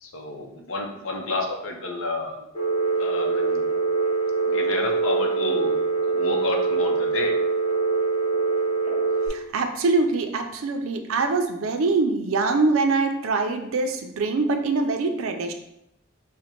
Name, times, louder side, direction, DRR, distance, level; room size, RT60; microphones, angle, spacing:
voice 1, 0.0-2.5 3.0-3.7 4.5-5.8 6.0-7.3, left 2 dB, 80° left, 2 dB, 0.7 m, -30 dB
Telephone, 2.5-9.3, right 4 dB, 30° left, 0.8 m, -24 dB
voice 2, 9.3-15.5, right 3 dB, 85° right, 6 dB, 0.4 m, -24 dB
5.0 x 2.1 x 2.9 m, 0.83 s
head